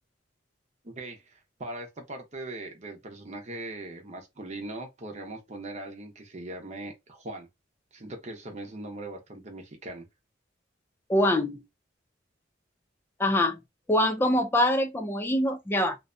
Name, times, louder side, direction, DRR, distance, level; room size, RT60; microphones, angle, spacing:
voice 1, 0.8-7.5 7.9-10.1, right 2 dB, 40° right, 0.7 m, -40 dB
voice 2, 11.1-11.6 13.2-13.6 13.9-16.0, left 1 dB, 10° left, 0.3 m, -24 dB
2.5 x 2.2 x 2.5 m
head